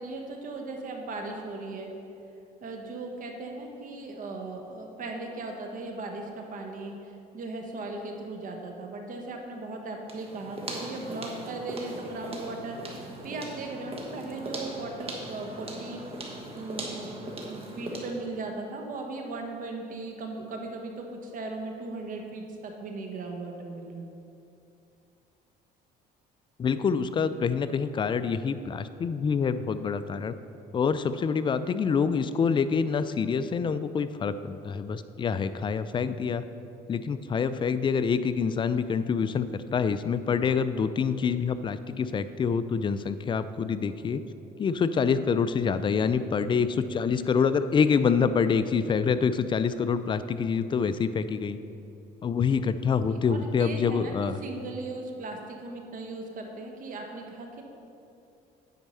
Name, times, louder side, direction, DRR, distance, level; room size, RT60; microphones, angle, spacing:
voice 1, 0.0-1.9 2.6-16.0 16.5-17.1 17.4-24.1 53.1-54.1 54.4-57.6, right 2 dB, 55° right, 3 dB, 1.1 m, -38 dB
sound 1, 10.1-18.3, right 2 dB, 35° right, 1.2 m, -39 dB
voice 2, 26.6-30.3 30.7-36.4 36.9-44.2 44.6-51.6 52.2-54.4, left 6 dB, 30° left, 12 dB, 0.3 m, -26 dB
9.3 x 4.5 x 5.5 m, 2.7 s
cardioid pair, 110°, 17 cm